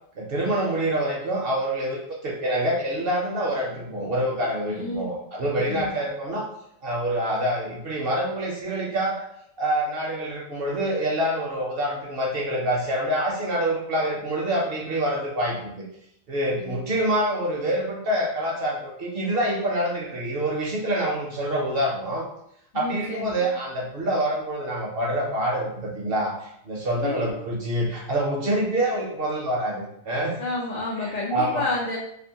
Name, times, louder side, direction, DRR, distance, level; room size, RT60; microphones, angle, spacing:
voice 1, 0.2-6.5 6.8-9.2 9.6-15.8 16.3-22.2 22.7-30.4 31.0-31.6, right 1 dB, 60° right, -2 dB, 0.7 m, -26 dB
voice 2, 4.7-5.1 5.7-5.8 16.6-16.8 22.7-23.3 27.0-27.2 30.4-32.0, left 2 dB, 65° left, -5 dB, 0.4 m, -30 dB
2.5 x 2.5 x 2.7 m, 0.73 s
omnidirectional pair, 1.3 m